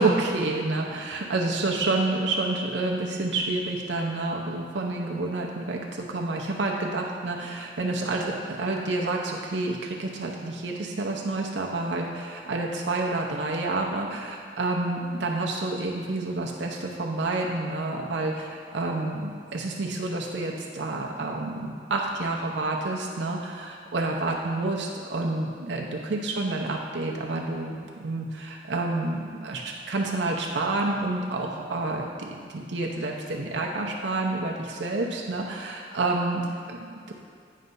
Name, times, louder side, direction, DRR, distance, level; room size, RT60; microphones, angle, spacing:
voice 1, 0.0-37.1, right 2 dB, 70° right, 0 dB, 0.6 m, -29 dB
9.2 x 3.3 x 5.3 m, 2.3 s
head